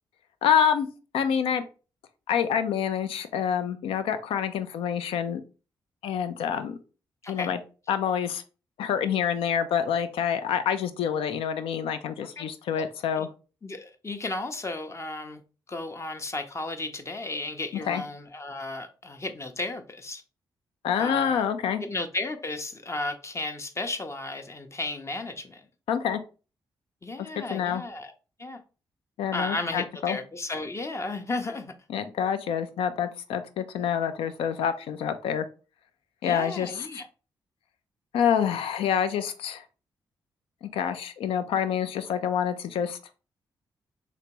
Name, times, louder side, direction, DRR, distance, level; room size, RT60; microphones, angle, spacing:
voice 1, 0.4-0.9 1.1-1.6 2.3-5.4 6.0-6.8 7.3-7.6 7.9-8.4 8.8-13.3 17.9-18.0 20.8-21.8 25.9-26.2 27.2-27.8 29.2-30.2 31.9-35.5 36.2-37.0 38.1-39.6 40.6-43.0, left 8 dB, 75° left, 0.4 m, -27 dB
voice 2, 7.2-7.6 12.4-12.5 12.7-12.8 13.2-13.3 13.6-15.4 15.7-20.2 21.0-21.4 21.8-25.6 27.0-28.1 28.4-28.6 29.3-31.7 36.2-37.1, left 2 dB, 30° left, 0.6 m, -34 dB
3.3 x 2.9 x 2.9 m
supercardioid pair, 45°, 10 cm